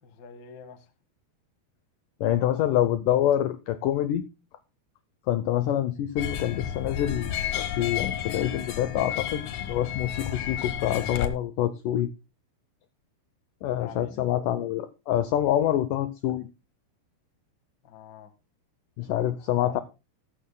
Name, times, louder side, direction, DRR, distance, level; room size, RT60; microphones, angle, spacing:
voice 1, 0.0-0.8 13.8-14.2 17.8-18.3 19.5-19.8, left 7 dB, 50° left, 1.3 m, -45 dB
voice 2, 2.2-4.2 5.3-12.1 13.6-16.5 19.0-19.8, left 11 dB, 85° left, 1.8 m, -26 dB
sound 1, 6.2-11.3, left 10 dB, 65° left, 1.9 m, -32 dB
14.5 x 14.0 x 2.2 m
omnidirectional pair, 4.7 m